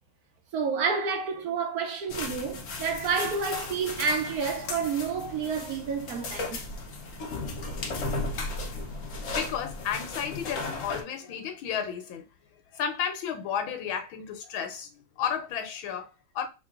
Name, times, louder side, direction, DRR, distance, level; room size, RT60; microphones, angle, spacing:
voice 1, 0.5-6.6, right 5 dB, 70° right, 0.9 m, -29 dB
sound 1, 2.1-11.0, left 3 dB, 55° left, 1.0 m, -35 dB
voice 2, 9.2-12.2 12.7-16.5, left 8 dB, 80° left, 1.6 m, -33 dB
3.8 x 3.6 x 2.4 m
omnidirectional pair, 2.2 m